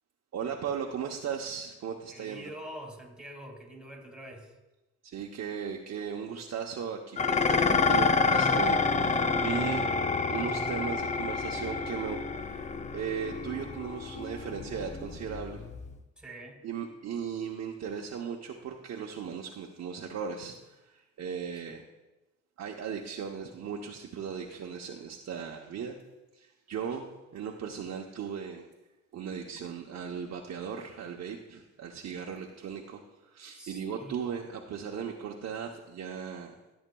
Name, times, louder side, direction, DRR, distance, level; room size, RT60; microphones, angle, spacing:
voice 1, 0.3-2.5 5.0-9.9 10.3-15.6 16.6-21.8 22.6-26.0 26.3-28.7 29.1-36.6, right 7 dB, 60° right, 1 dB, 0.8 m, -37 dB
voice 2, 2.1-4.5 16.2-16.6 21.7-21.8 24.5-24.6 33.6-34.3, right 1 dB, 5° right, 2 dB, 2.1 m, -45 dB
Dishes pots and pans, 7.2-16.0, left 4 dB, 25° left, 0.6 m, -28 dB
14.0 x 8.0 x 2.3 m, 1.1 s
cardioid pair, 90°, 30 cm